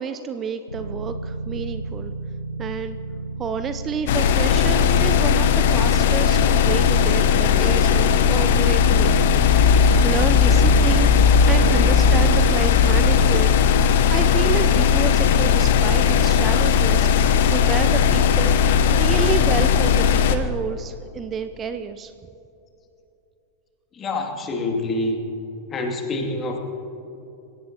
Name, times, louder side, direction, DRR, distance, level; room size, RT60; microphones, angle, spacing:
voice 1, 0.0-2.1 2.6-3.0 3.4-9.2 9.6-9.7 10.0-11.1 11.5-13.6 14.1-18.6 18.9-22.1, right 6 dB, 25° right, 10 dB, 0.6 m, -29 dB
sound 1, 0.7-19.4, right 3 dB, 90° right, 1.0 m, -33 dB
sound 2, 4.1-20.4, left 8 dB, 55° left, 1.0 m, -18 dB
sound 3, 8.2-14.1, left 2 dB, 75° left, 2.0 m, -23 dB
voice 2, 24.0-25.3 25.7-26.6, left 2 dB, 25° left, 3 dB, 2.6 m, -26 dB
28.0 x 17.5 x 3.0 m, 2.9 s
figure-of-eight pair, 90°, 0 cm